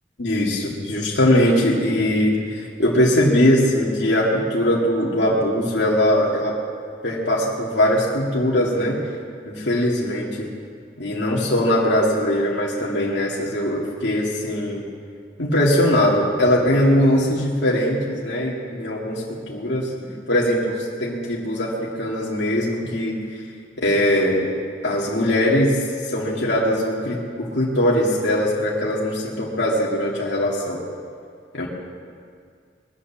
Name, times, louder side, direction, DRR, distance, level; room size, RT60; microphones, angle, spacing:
voice 1, 0.2-6.6 7.0-9.0 9.5-10.5 11.0-14.8 15.4-19.9 20.3-23.2 23.8-24.5 24.8-25.8 26.0-30.8 31.5-31.7, left 1 dB, 80° left, -5 dB, 2.2 m, -21 dB
21.5 x 8.6 x 7.2 m, 2.2 s
head